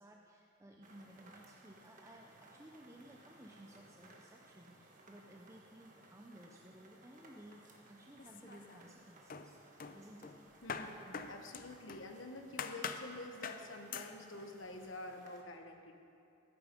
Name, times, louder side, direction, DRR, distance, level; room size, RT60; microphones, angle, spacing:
voice 1, 0.0-7.6 7.9-9.6 9.9-10.3, right 1 dB, 15° right, 0 dB, 0.6 m, -57 dB
sound 1, 0.8-15.4, right 2 dB, 40° right, 1.5 m, -62 dB
sound 2, 8.2-9.0 9.3-12.1 12.6-13.1 13.4-13.7 13.9-14.2, left 6 dB, 45° left, 0.6 m, -44 dB
voice 2, 10.6-16.0, left 2 dB, 75° left, 5 dB, 1.1 m, -48 dB
13.5 x 9.9 x 5.2 m, 2.7 s
head